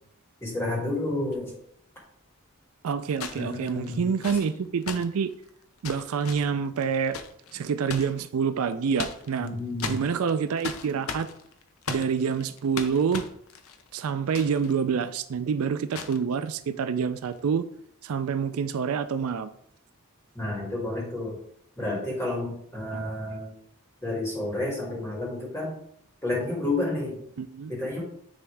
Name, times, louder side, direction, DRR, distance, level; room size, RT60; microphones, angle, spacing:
voice 1, 0.4-1.5 3.3-4.1 9.4-10.0 20.3-21.4 21.8-23.5 24.0-25.7 26.2-27.2 27.7-28.0, left 2 dB, 10° left, -4 dB, 2.3 m, -30 dB
sound 1, 1.3-1.4 3.1-8.2 8.7-9.5 9.8-14.8 15.0-15.1 15.9-16.2 17.2-17.4, left 5 dB, 70° left, 0.6 m, -38 dB
voice 2, 2.8-5.3 5.8-7.2 7.5-9.5 9.9-11.3 11.9-13.2 13.9-17.7 18.0-19.5 22.9-23.0 27.4-27.7, right 6 dB, 75° right, 12 dB, 0.4 m, -27 dB
9.8 x 3.6 x 3.3 m, 0.67 s
head